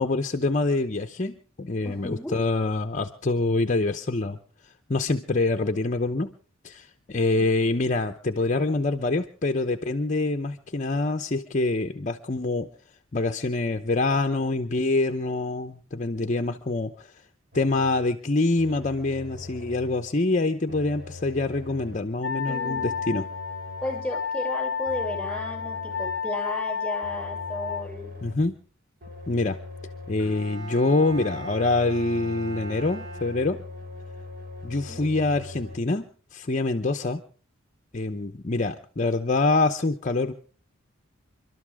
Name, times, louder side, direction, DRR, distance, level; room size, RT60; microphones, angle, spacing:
voice 1, 0.0-4.4 4.9-6.3 6.6-12.7 13.1-17.1 17.5-23.3 28.2-28.6 29.3-29.6 30.1-33.6 34.6-37.2 37.9-40.3, left 2 dB, 35° left, 7 dB, 0.8 m, -25 dB
voice 2, 1.8-2.3 7.4-7.5 22.5-22.9 23.8-28.1 34.7-35.0, left 1 dB, 5° left, 1 dB, 6.5 m, -34 dB
sound 1, 17.5-18.0 18.6-20.1 20.7-22.1 22.7-24.2 24.8-26.3 27.0-28.5 29.0-30.4 31.1-35.8, left 3 dB, 45° right, 3.1 m, -41 dB
Wind instrument woodwind instrument, 22.2-27.9, left 6 dB, 70° left, 0.7 m, -31 dB
Bowed string instrument, 30.2-33.9, right 3 dB, 70° right, 5.8 m, -40 dB
29.5 x 12.5 x 3.5 m, 0.41 s
head